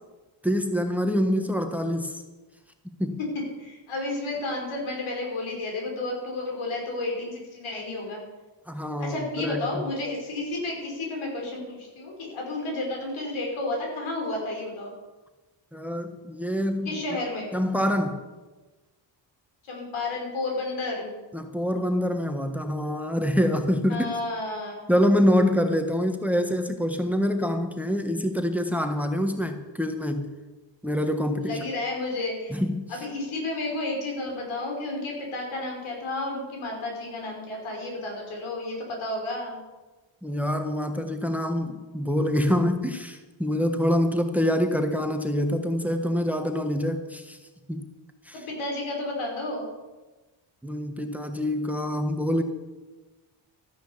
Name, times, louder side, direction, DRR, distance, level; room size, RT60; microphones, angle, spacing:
voice 1, 0.4-2.2 3.0-3.2 8.7-9.8 15.7-16.9 17.5-18.2 21.3-24.1 24.9-30.3 30.8-31.6 32.5-32.9 40.2-47.4 47.7-47.9 48.2-48.4 50.6-52.4, equal, 5° right, 6 dB, 1.4 m, -25 dB
voice 2, 3.6-8.2 9.0-14.9 16.8-17.5 19.6-21.2 23.9-24.9 31.4-32.6 32.9-39.6 48.5-49.7, left 2 dB, 85° left, 0 dB, 5.5 m, -31 dB
13.0 x 10.0 x 7.2 m, 1.2 s
cardioid pair, 100°, 47 cm